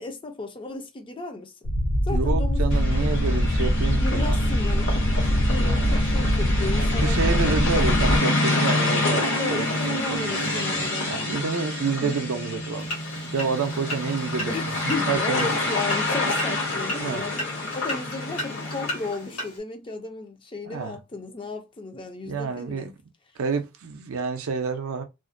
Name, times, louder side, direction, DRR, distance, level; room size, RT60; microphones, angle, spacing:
voice 1, 0.0-1.7 2.0-3.2 4.0-7.3 9.3-11.5 12.0-12.1 14.5-17.5 17.7-22.9, left 2 dB, 20° left, 0.4 m, -34 dB
sound 1, 1.6-8.2, equal, 70° left, 0.5 m, -23 dB
voice 2, 2.1-4.4 5.6-6.1 7.0-9.7 10.1-13.0 13.3-14.5 14.8-15.7 17.0-17.2 20.6-21.0 22.3-22.9 23.4-25.0, right 5 dB, 60° right, 0.5 m, -29 dB
sound 2, 2.7-19.2, left 2 dB, 55° left, 0.9 m, -27 dB
sound 3, 12.8-19.6, left 1 dB, 90° left, 1.1 m, -36 dB
2.4 x 2.1 x 2.5 m
head